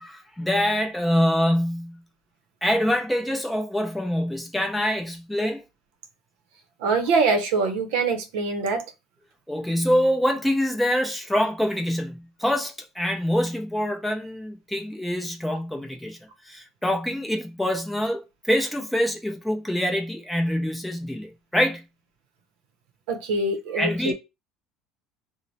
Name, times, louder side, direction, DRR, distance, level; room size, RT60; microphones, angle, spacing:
voice 1, 0.0-2.0 2.6-5.6 9.5-16.2 16.4-21.8 23.7-24.1, equal, 5° left, 0.5 m, -25 dB
voice 2, 6.8-8.9 23.1-24.1, right 3 dB, 80° right, 0.6 m, -24 dB
3.0 x 2.0 x 4.0 m
cardioid pair, 160°, 0 cm